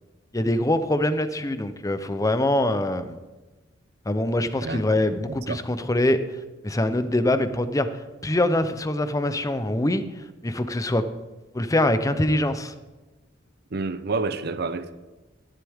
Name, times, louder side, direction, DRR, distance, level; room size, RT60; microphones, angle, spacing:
voice 1, 0.3-3.2 4.1-6.2 6.6-7.9 8.2-10.0 10.4-11.0 11.5-12.7, left 1 dB, 20° left, 0.7 m, -23 dB
voice 2, 13.7-14.9, right 3 dB, 55° right, 0.6 m, -28 dB
13.5 x 11.5 x 3.6 m
head